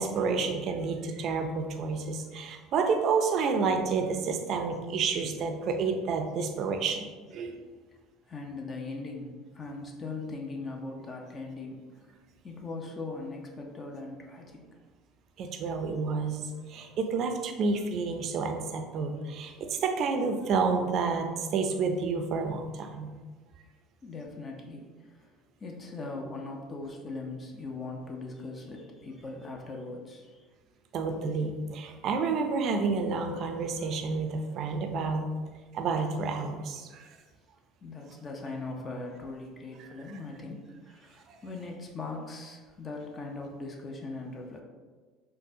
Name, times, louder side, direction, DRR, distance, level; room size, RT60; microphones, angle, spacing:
voice 1, 0.0-7.6 15.4-23.1 30.9-35.2 35.7-37.1 41.3-41.4, right 4 dB, 55° right, 4 dB, 0.4 m, -30 dB
voice 2, 8.2-12.2 12.4-14.7 24.0-25.3 25.6-30.5 37.8-44.6, left 3 dB, 35° left, 0 dB, 0.6 m, -40 dB
4.0 x 2.1 x 2.7 m, 1.4 s
hypercardioid pair, 75°, 0 cm